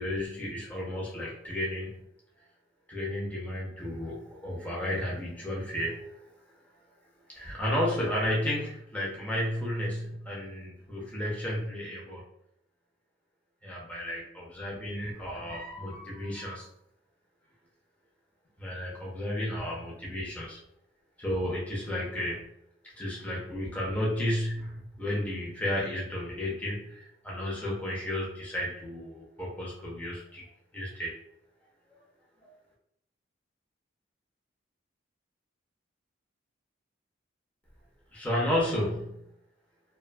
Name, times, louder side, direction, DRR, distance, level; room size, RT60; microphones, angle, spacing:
voice 1, 0.0-1.9 2.9-6.1 7.4-12.2 13.6-16.7 18.6-20.6 21.2-22.4 23.0-30.5 30.7-31.1 31.9-32.0 32.4-32.5 38.1-39.1, left 1 dB, 10° left, -5 dB, 0.6 m, -32 dB
2.5 x 2.2 x 2.5 m, 0.76 s
head